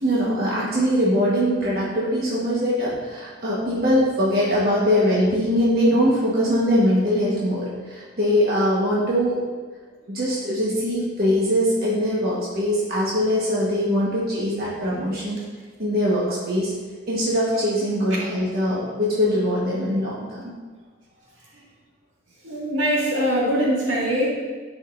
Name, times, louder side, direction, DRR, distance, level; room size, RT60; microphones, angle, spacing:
voice 1, 0.0-9.4 10.1-15.4 15.8-16.7 17.1-20.5, equal, 50° right, -7 dB, 1.3 m, -22 dB
voice 2, 22.4-24.3, equal, 80° right, -5 dB, 2.0 m, -22 dB
10.5 x 5.1 x 2.6 m, 1.4 s
head